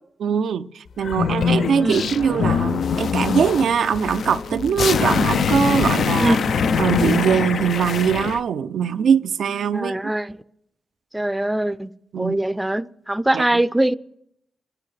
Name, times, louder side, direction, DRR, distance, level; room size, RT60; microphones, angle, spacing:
voice 1, 0.2-6.4 6.8-10.0 12.1-12.4 13.3-13.6, right 7 dB, 85° right, 0.4 m, -21 dB
sound 1, 1.0-8.4, left 6 dB, 75° left, 0.4 m, -23 dB
sound 2, 1.2-7.2, left 1 dB, 45° left, 0.8 m, -34 dB
voice 2, 9.7-10.4 11.1-11.9 12.2-13.9, right 1 dB, 10° right, 0.4 m, -22 dB
24.5 x 11.5 x 3.3 m
cardioid pair, 75°, 0 cm